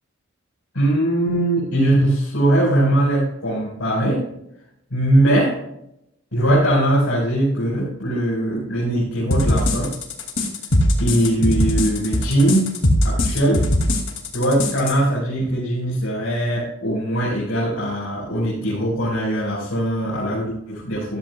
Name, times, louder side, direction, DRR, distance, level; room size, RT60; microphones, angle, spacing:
voice 1, 0.7-4.2 4.9-5.6 6.3-9.9 11.0-12.8 13.0-13.7 14.3-21.2, right 1 dB, 85° left, -6 dB, 4.7 m, -20 dB
sound 1, 9.3-14.9, left 1 dB, 65° left, 2.4 m, -20 dB
14.5 x 12.0 x 2.3 m, 0.79 s
head